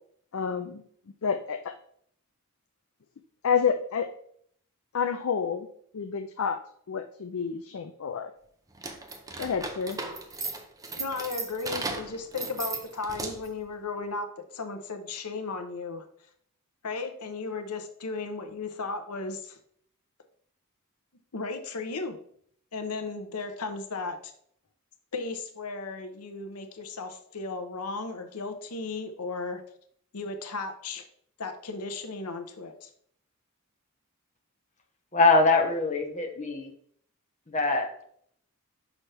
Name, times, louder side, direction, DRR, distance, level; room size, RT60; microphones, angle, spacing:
voice 1, 0.3-0.8 1.2-1.8 3.4-4.1 4.9-5.7 5.9-6.6 6.9-8.3 9.4-10.0, left 6 dB, 65° left, 8 dB, 0.4 m, -29 dB
sound 1, 8.7-13.6, right 3 dB, 15° right, 0.6 m, -36 dB
voice 2, 11.0-16.0 16.8-19.6 21.3-22.2 22.7-24.2 25.1-29.6 30.1-31.0 31.4-32.9, left 3 dB, 85° left, 6 dB, 0.8 m, -35 dB
voice 3, 35.1-36.7 37.5-37.9, left 3 dB, 35° left, 3 dB, 1.0 m, -23 dB
6.1 x 5.7 x 3.3 m, 0.63 s
head